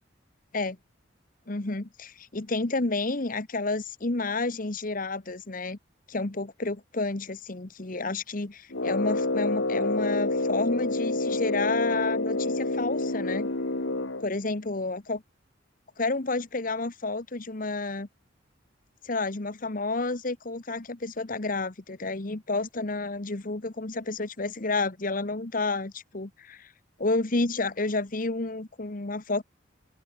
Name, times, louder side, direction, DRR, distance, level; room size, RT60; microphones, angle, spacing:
voice 1, 1.5-5.8 6.1-13.5 14.2-15.2 16.0-18.1 19.0-26.7 27.0-29.4, left 3 dB, 45° left, 1.2 m, -30 dB
Brass instrument, 8.7-14.3, left 2 dB, 75° left, 2.4 m, -28 dB
open air
head